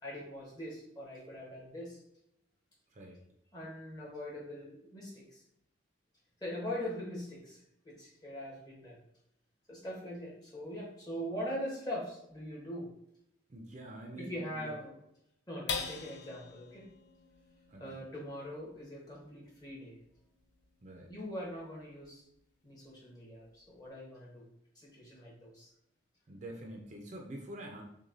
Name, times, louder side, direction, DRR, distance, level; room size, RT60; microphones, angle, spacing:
voice 1, 0.0-2.0 3.5-5.4 6.4-9.0 9.7-12.9 14.1-14.9 15.5-16.9 17.8-20.0 21.1-22.3 22.6-24.4 24.7-25.7, equal, 20° left, -5 dB, 1.1 m, -42 dB
voice 2, 2.9-3.2 13.5-14.8 17.7-18.1 20.8-21.1 26.3-27.8, right 1 dB, 35° right, 1 dB, 0.5 m, -46 dB
sound 1, 15.7-22.4 22.9-23.0 23.4-23.8, left 5 dB, 60° left, 0.5 m, -45 dB
6.1 x 2.2 x 2.6 m, 0.77 s
head